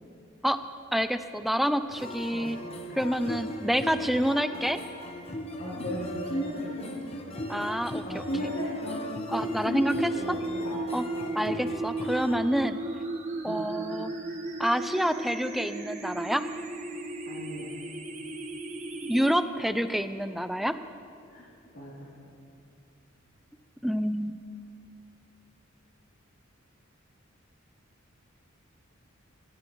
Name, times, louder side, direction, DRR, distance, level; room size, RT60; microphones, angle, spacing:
voice 1, 0.9-2.6 3.0-4.8 7.5-8.2 9.3-10.4 10.9-11.1 11.3-12.8 13.4-14.1 14.6-16.4 19.0-20.8 23.8-24.4, equal, ahead, 11 dB, 0.3 m, -28 dB
sound 1, 1.9-12.4, equal, 30° left, 1.0 m, -38 dB
voice 2, 5.6-6.9 8.0-9.0 9.6-9.8 10.1-10.4 10.6-10.8 11.1-11.3 13.4-13.6 17.3-17.7 21.3-21.4 21.7-22.1, equal, 65° left, -8 dB, 3.0 m, -35 dB
sound 2, 9.3-19.3, right 2 dB, 35° right, 1.2 m, -35 dB
17.0 x 15.0 x 3.1 m, 2.6 s
head